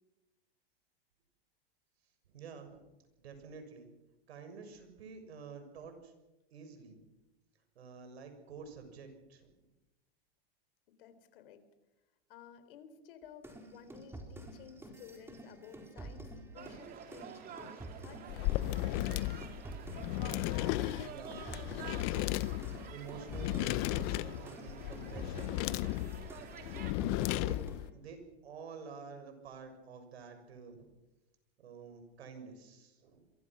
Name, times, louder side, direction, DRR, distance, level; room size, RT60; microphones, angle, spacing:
voice 1, 2.3-2.9 3.2-3.9 4.3-6.1 6.5-7.1 7.8-9.6 21.1-21.8 22.9-25.7 27.3-27.6 27.9-30.9 31.6-33.2, right 5 dB, 85° right, 7 dB, 6.9 m, -49 dB
voice 2, 10.9-11.6 12.3-19.1 26.8-27.2, left 7 dB, 60° left, 11 dB, 3.9 m, -55 dB
sound 1, 13.4-20.5 20.8-27.9, right 2 dB, 10° right, 4.3 m, -49 dB
sound 2, 16.5-26.9, right 8 dB, 30° right, 3.0 m, -50 dB
sound 3, 18.3-27.9, left 17 dB, 40° left, 0.7 m, -35 dB
28.0 x 23.5 x 6.3 m, 1.0 s
supercardioid pair, 145°, 31 cm